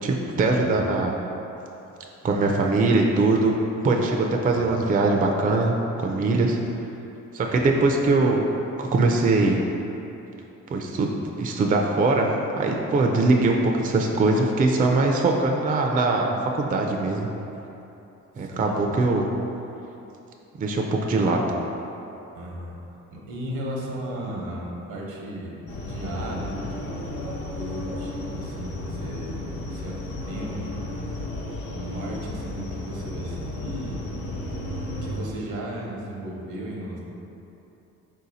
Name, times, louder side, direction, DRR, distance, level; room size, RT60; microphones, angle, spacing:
voice 1, 0.0-1.1 2.2-3.6 3.8-5.7 6.0-6.6 7.3-8.4 8.8-9.6 10.7-11.1 11.4-12.3 12.6-17.3 18.4-19.3 20.6-21.4, right 3 dB, 30° right, 1 dB, 0.4 m, -21 dB
voice 2, 0.6-1.0 4.5-4.8 7.4-7.9 18.4-18.9 22.3-22.8 23.1-25.6 25.8-31.1 31.7-34.1 34.9-37.0, right 1 dB, 80° right, -3 dB, 0.9 m, -36 dB
sound 1, 25.7-35.2, left 1 dB, 80° left, 0.9 m, -33 dB
4.3 x 2.7 x 4.0 m, 3.0 s
cardioid pair, 90°, 30 cm